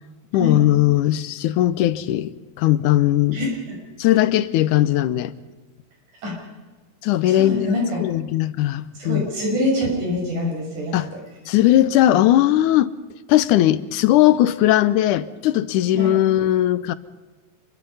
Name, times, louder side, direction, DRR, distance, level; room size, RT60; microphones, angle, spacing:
voice 1, 0.3-3.4 4.0-5.3 7.0-7.7 8.0-9.2 10.9-11.1 11.5-12.9 13.3-16.9, left 13 dB, 85° left, 2.3 m, -18 dB
voice 2, 7.2-8.0 9.0-11.2 16.0-16.2, left 1 dB, 80° right, 7.5 m, -25 dB
26.5 x 22.5 x 5.6 m
omnidirectional pair, 3.5 m